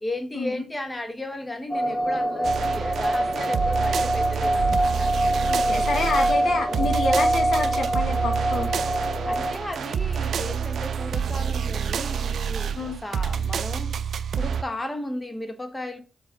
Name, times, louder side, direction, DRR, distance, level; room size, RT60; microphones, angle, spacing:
voice 1, 0.0-5.1 6.7-6.9 9.2-13.9 14.4-16.0, left 1 dB, 20° left, 1.1 m, -35 dB
sound 1, 1.7-9.5, right 1 dB, 45° left, 2.0 m, -24 dB
sound 2, 2.4-14.6, right 7 dB, 70° right, 0.4 m, -28 dB
voice 2, 5.5-8.7 12.7-13.0, left 3 dB, 70° left, 1.6 m, -28 dB
4.7 x 4.0 x 5.2 m
cardioid pair, 65°, 0 cm